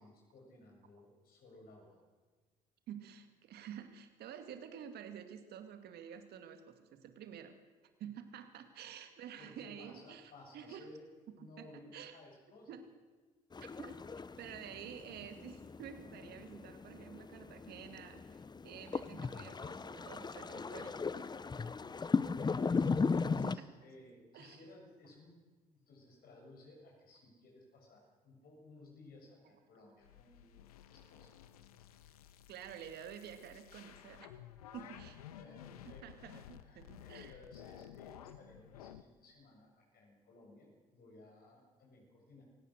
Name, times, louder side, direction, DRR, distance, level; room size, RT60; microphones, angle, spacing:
voice 1, 0.0-2.0 8.7-8.8 9.4-11.1 11.4-12.8 21.8-25.4 25.7-31.3 34.7-35.1 35.4-36.3 36.6-42.4, left 2 dB, 55° left, -1 dB, 7.4 m, -58 dB
voice 2, 2.9-7.5 8.0-10.9 11.6-12.2 12.7-12.8 13.6-21.3 23.4-23.6 24.3-24.6 32.5-34.4 34.7-35.2 35.8-37.3, right 9 dB, 60° right, 8 dB, 2.2 m, -50 dB
sound 1, 13.5-23.6, left 4 dB, 25° left, 0.8 m, -37 dB
sound 2, 30.0-39.0, left 11 dB, 80° left, 0.9 m, -54 dB
28.0 x 17.0 x 6.5 m, 1.3 s
hypercardioid pair, 50°, 19 cm